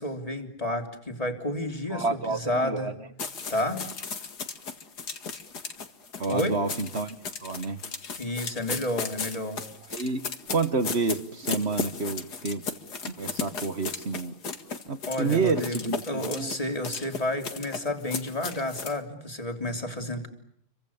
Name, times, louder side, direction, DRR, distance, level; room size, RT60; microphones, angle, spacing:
voice 1, 0.0-3.0 3.5-3.9 6.3-6.6 8.2-9.6 9.9-10.0 15.1-20.3, left 1 dB, 15° left, 4 dB, 3.4 m, -31 dB
voice 2, 1.9-2.9 6.2-7.2 7.4-7.8 9.9-10.2 10.5-12.6 13.1-14.3 14.9-16.5, right 4 dB, 35° right, 11 dB, 1.5 m, -29 dB
sound 1, 3.2-19.0, left 5 dB, 50° left, 2.4 m, -36 dB
30.0 x 24.5 x 7.2 m, 0.71 s
omnidirectional pair, 2.4 m